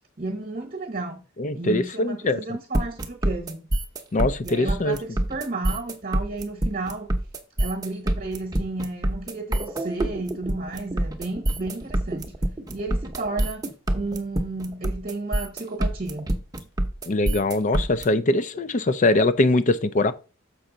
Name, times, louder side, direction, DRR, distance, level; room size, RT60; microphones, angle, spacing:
voice 1, 0.2-1.2 1.5-3.6 4.4-7.1 7.6-12.3 12.7-13.6 13.9-16.3, right 2 dB, 40° right, 1.1 m, -32 dB
voice 2, 1.4-2.4 4.1-5.0 17.1-20.1, left 2 dB, 35° left, 0.5 m, -22 dB
sound 1, 2.7-18.0, right 1 dB, 15° right, 0.8 m, -26 dB
7.0 x 5.5 x 3.9 m
head